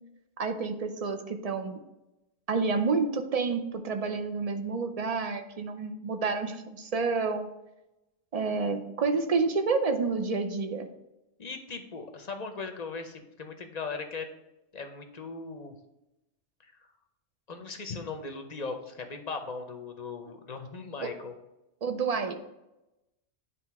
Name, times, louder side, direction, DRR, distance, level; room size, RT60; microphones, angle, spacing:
voice 1, 0.4-1.8 2.5-7.5 8.3-10.9 21.0-21.1 21.8-22.3, right 4 dB, 40° right, 7 dB, 0.6 m, -29 dB
voice 2, 11.4-14.3 14.7-15.7 17.5-21.3, left 4 dB, 45° left, 6 dB, 0.7 m, -38 dB
9.3 x 3.2 x 4.6 m, 0.95 s
omnidirectional pair, 1.2 m